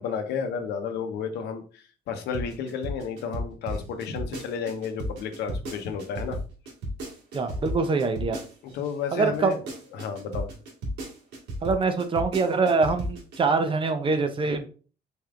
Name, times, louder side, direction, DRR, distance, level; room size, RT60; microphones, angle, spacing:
voice 1, 0.0-6.4 7.5-7.6 8.7-9.6 9.9-10.5, left 6 dB, 80° left, 6 dB, 0.8 m, -32 dB
sound 1, 2.2-8.9 9.3-13.4, equal, 80° right, 1.6 m, -34 dB
voice 2, 7.3-8.4 9.1-9.5 11.6-14.7, right 4 dB, 30° right, 8 dB, 0.6 m, -24 dB
4.4 x 3.4 x 2.5 m, 0.38 s
cardioid pair, 110°, 17 cm